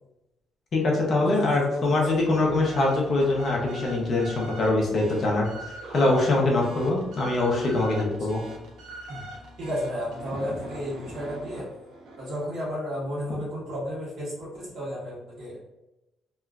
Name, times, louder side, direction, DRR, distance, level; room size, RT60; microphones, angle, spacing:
voice 1, 0.7-5.5 5.9-8.4, left 2 dB, 40° left, -2 dB, 0.6 m, -23 dB
voice 2, 1.4-2.2 9.1-9.2 9.6-11.7 12.2-15.6, equal, 55° right, -7 dB, 1.4 m, -33 dB
sound 1, 2.0-12.6, right 2 dB, 75° right, 0.8 m, -42 dB
2.9 x 2.3 x 2.3 m, 0.97 s
cardioid pair, 145°, 0 cm